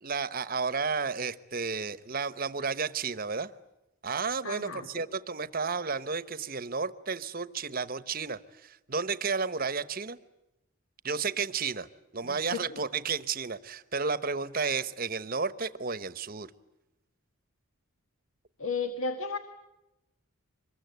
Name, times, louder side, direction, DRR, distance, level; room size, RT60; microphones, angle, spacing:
voice 1, 0.0-3.5 4.0-10.2 11.0-11.9 12.1-16.5, right 5 dB, 40° right, 14 dB, 1.0 m, -32 dB
voice 2, 4.4-4.9 12.2-12.6 18.6-19.4, left 4 dB, 70° left, 8 dB, 1.7 m, -33 dB
25.5 x 22.0 x 9.3 m, 0.93 s
head